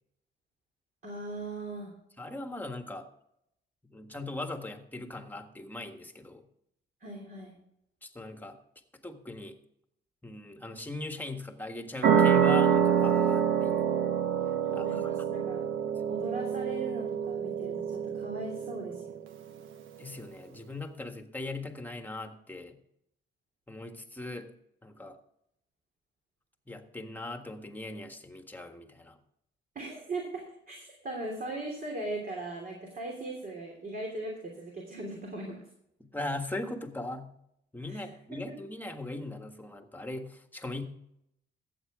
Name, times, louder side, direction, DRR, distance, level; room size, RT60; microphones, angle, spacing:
voice 1, 1.0-1.9 7.0-7.6 14.6-15.6 16.1-19.2 29.7-35.6 37.9-38.0, right 2 dB, 45° right, 0 dB, 3.1 m, -39 dB
voice 2, 2.2-3.1 3.9-6.4 8.0-8.6 9.0-9.6 10.2-13.9 14.7-15.3 20.0-22.8 23.7-24.5 24.8-25.2 26.7-29.2 36.0-37.3 37.7-40.8, left 2 dB, 10° left, 6 dB, 1.5 m, -39 dB
sound 1, 12.0-19.2, right 8 dB, 80° right, 1.2 m, -27 dB
14.0 x 8.3 x 3.7 m, 0.76 s
cardioid pair, 90°, 20 cm